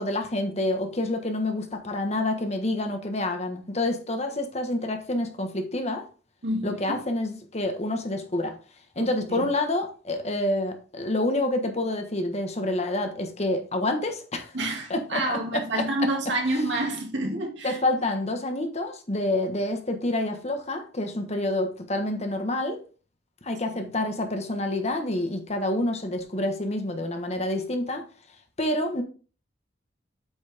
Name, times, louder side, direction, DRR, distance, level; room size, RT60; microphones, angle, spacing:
voice 1, 0.0-6.0 6.6-8.6 8.9-14.5 14.9-15.2 15.5-15.8 16.5-16.6 17.6-22.8 23.4-28.0 28.6-29.0, left 1 dB, 35° left, 1.4 m, -28 dB
voice 2, 6.4-7.0 9.0-9.5 14.5-17.8, right 1 dB, 85° right, 2.2 m, -28 dB
8.3 x 6.4 x 3.5 m
head